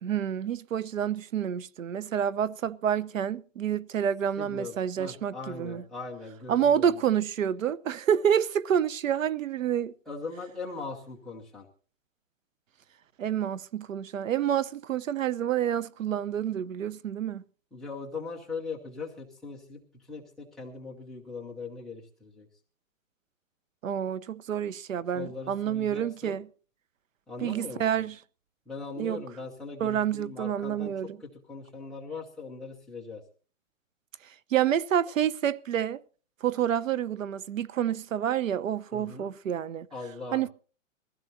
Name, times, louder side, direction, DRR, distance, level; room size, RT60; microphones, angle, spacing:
voice 1, 0.0-5.8 6.5-9.9 13.2-17.4 23.8-26.5 27.4-28.2 29.0-29.2 29.8-31.2 34.5-36.0 36.4-39.9 40.3-40.5, right 9 dB, 75° right, 1.0 m, -28 dB
voice 2, 4.4-7.0 10.1-11.7 17.7-19.8 20.1-22.5 25.1-26.4 27.3-27.8 28.7-30.9 31.2-33.2 38.9-39.3 39.9-40.4, left 4 dB, ahead, 0.7 m, -40 dB
22.5 x 15.5 x 2.8 m
hypercardioid pair, 170°, 39 cm